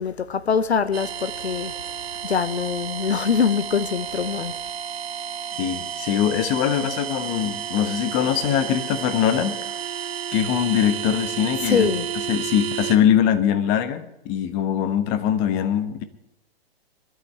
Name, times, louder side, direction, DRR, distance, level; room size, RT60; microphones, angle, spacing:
voice 1, 0.0-1.7 2.2-4.5 11.6-12.1, left 6 dB, 90° left, 1.0 m, -23 dB
sound 1, 0.9-13.0, right 8 dB, 70° right, 1.5 m, -31 dB
voice 2, 5.6-9.6 10.3-11.9 12.3-16.0, left 9 dB, 35° left, 1.3 m, -22 dB
22.5 x 12.0 x 3.4 m
hypercardioid pair, 120°, 31 cm